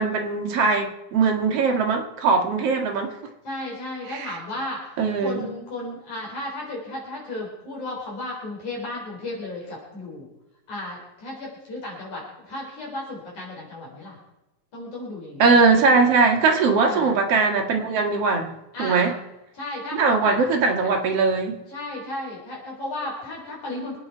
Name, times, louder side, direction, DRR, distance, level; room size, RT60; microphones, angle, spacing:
voice 1, 0.0-3.1 4.1-4.3 5.0-5.4 15.4-18.5 18.8-19.1 19.9-21.6, right 4 dB, 50° right, 2 dB, 2.4 m, -20 dB
voice 2, 3.4-4.9 5.2-10.3 10.7-14.2 14.7-15.7 16.9-17.1 18.7-19.1 19.5-20.4 20.8-20.9 21.7-24.0, left 2 dB, 55° left, -3 dB, 5.1 m, -34 dB
26.0 x 9.0 x 4.6 m, 0.96 s
omnidirectional pair, 4.2 m